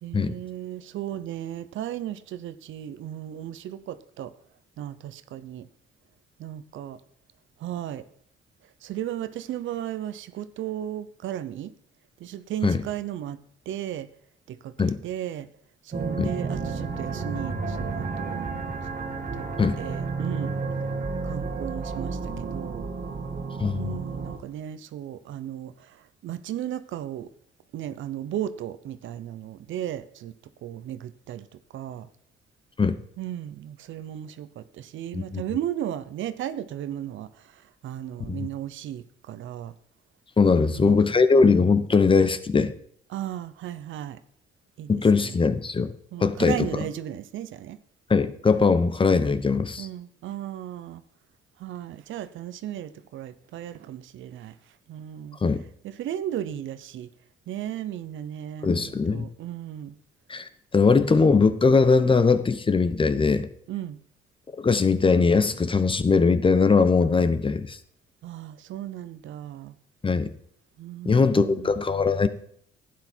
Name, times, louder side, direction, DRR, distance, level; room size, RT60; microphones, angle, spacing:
voice 1, 0.0-4.3 4.8-5.7 6.4-7.0 7.6-8.0 8.8-11.7 12.2-13.4 13.7-14.1 14.5-15.5 15.8-18.5 19.3-19.5 19.8-20.5 21.2-22.9 23.7-27.3 27.7-30.3 30.6-32.1 33.2-39.7 40.4-41.0 43.1-44.2 44.8-45.3 46.1-47.8 49.8-51.0 51.6-54.6 54.9-55.4 55.8-57.1 57.5-60.0 63.7-64.0 68.2-69.8 70.8-71.8, right 11 dB, 75° right, 13 dB, 0.7 m, -35 dB
sound 1, 15.9-24.4, right 4 dB, 40° right, 1.8 m, -31 dB
voice 2, 23.6-24.0 32.8-33.0 35.1-35.4 38.3-38.5 40.4-42.7 44.9-45.9 46.2-46.7 48.1-49.9 55.4-55.6 58.6-59.2 60.3-63.5 64.6-67.8 70.0-70.3 71.0-72.3, left 4 dB, 25° left, 13 dB, 0.9 m, -21 dB
12.0 x 9.4 x 4.5 m, 0.64 s
cardioid pair, 90°, 20 cm